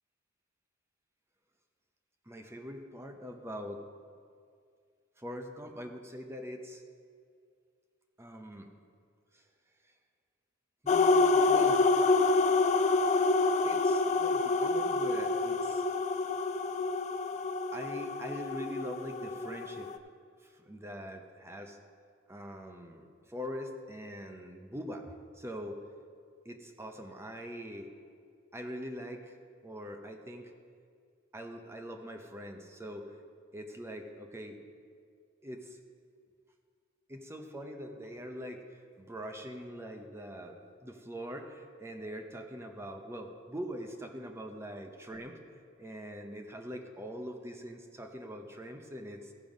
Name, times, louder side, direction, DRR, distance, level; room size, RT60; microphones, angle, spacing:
voice 1, 2.3-3.8 5.2-6.8 8.2-8.7 9.3-9.5 9.8-9.9 10.8-11.9 12.3-12.5 13.6-15.9 17.7-19.9 20.4-21.8 22.3-25.8 26.4-27.9 28.5-30.5 31.3-33.2 33.5-34.6 35.4-35.8 37.1-45.4 45.8-49.3, equal, 15° right, 4 dB, 0.7 m, -43 dB
sound 1, 10.9-20.0, left 3 dB, 35° left, 0.4 m, -27 dB
15.0 x 5.5 x 5.2 m, 2.2 s
head